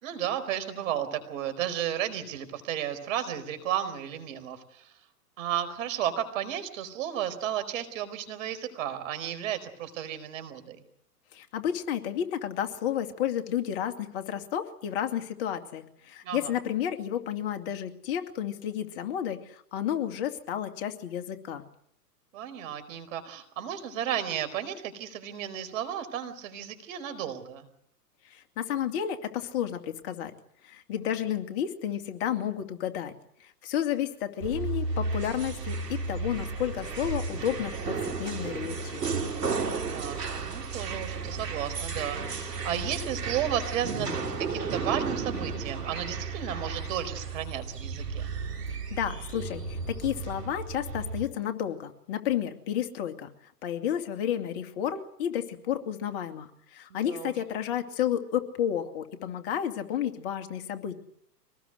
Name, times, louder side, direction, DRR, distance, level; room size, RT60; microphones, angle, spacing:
voice 1, 0.0-4.9 5.4-10.8 16.2-16.4 22.3-27.7 39.7-48.3 56.9-57.3, right 10 dB, 55° right, 11 dB, 4.7 m, -33 dB
voice 2, 11.3-21.6 28.2-30.3 30.6-33.1 33.4-39.0 48.7-53.3 53.6-61.0, left 10 dB, 40° left, 6 dB, 2.5 m, -31 dB
sound 1, 34.4-51.3, right 4 dB, 80° right, 3.9 m, -33 dB
24.5 x 19.5 x 8.0 m, 0.70 s
hypercardioid pair, 120°, 48 cm